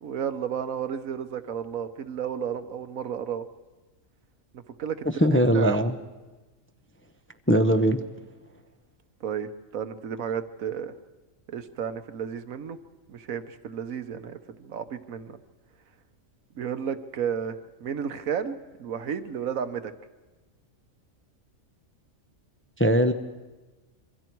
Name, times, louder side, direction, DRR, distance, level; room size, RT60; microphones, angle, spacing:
voice 1, 0.0-3.5 4.8-5.1 5.5-5.8 9.2-10.9 11.5-12.8 13.1-15.4 16.5-19.9, right 7 dB, 80° right, 10 dB, 1.4 m, -32 dB
voice 2, 5.2-5.9 7.5-8.0 22.8-23.1, equal, 10° left, 7 dB, 0.6 m, -20 dB
26.5 x 23.5 x 4.6 m, 1.2 s
omnidirectional pair, 1.4 m